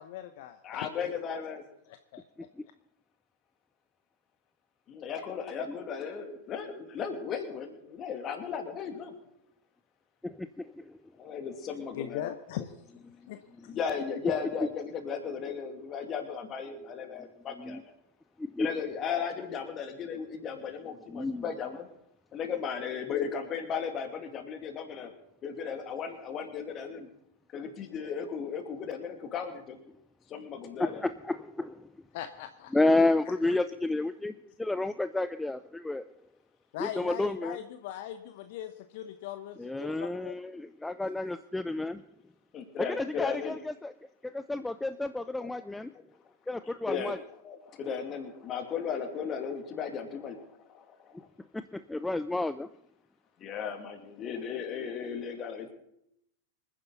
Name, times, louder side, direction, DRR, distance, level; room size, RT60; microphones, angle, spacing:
voice 1, 0.0-0.9 1.9-2.2 11.9-12.7 13.3-13.4 32.1-32.7 36.7-40.4, left 11 dB, 50° left, 9 dB, 0.9 m, -40 dB
voice 2, 0.6-1.6 4.9-9.1 11.2-12.3 13.7-17.8 18.6-21.9 22.3-25.1 25.4-27.1 27.5-29.8 30.3-31.1 42.5-43.6 45.4-45.5 46.9-47.2 47.4-51.3 53.4-55.7, left 6 dB, 30° left, 6 dB, 2.6 m, -36 dB
voice 3, 10.2-11.0 17.6-17.8 18.4-18.7 21.1-21.5 30.8-31.9 32.7-36.1 36.8-37.6 39.6-42.0 42.9-45.9 46.5-47.2 51.4-52.7, left 2 dB, 5° left, 12 dB, 0.5 m, -31 dB
26.0 x 10.0 x 4.1 m, 0.77 s
figure-of-eight pair, 90°, 0 cm